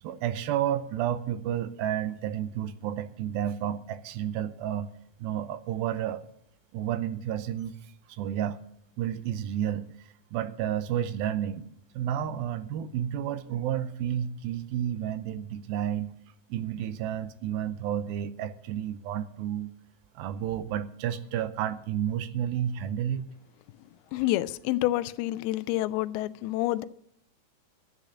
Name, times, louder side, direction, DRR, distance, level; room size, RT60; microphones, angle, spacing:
voice 1, 0.0-4.9 5.2-6.2 6.7-7.8 8.1-8.6 9.0-9.9 10.3-11.7 11.9-16.1 16.5-19.7 20.2-23.2, right 10 dB, 80° right, 2.4 m, -31 dB
voice 2, 24.1-26.9, left 16 dB, 85° left, 2.5 m, -28 dB
12.0 x 9.2 x 7.1 m
omnidirectional pair, 4.5 m